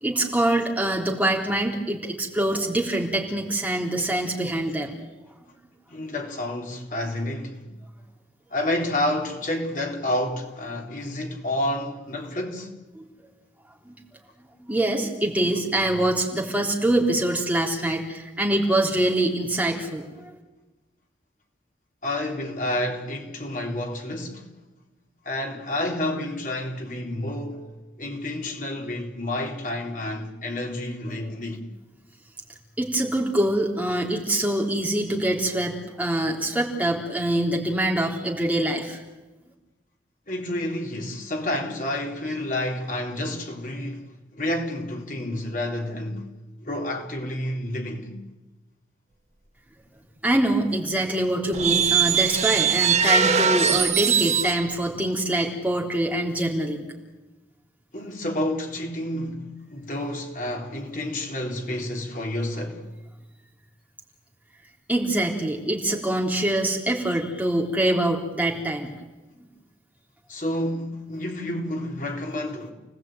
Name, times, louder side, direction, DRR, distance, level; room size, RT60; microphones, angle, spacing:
voice 1, 0.0-4.9 13.0-13.1 13.9-14.0 14.6-20.4 32.8-39.0 50.2-56.9 64.9-68.9, right 1 dB, 10° right, 3.6 m, -24 dB
voice 2, 5.9-7.7 8.5-12.7 22.0-24.5 25.2-27.7 28.0-31.6 40.3-46.3 46.6-48.2 57.9-62.8 70.3-72.7, left 1 dB, 45° left, 3.7 m, -29 dB
sound 1, 51.5-54.6, right 7 dB, 40° right, 1.0 m, -21 dB
29.5 x 19.0 x 9.2 m
head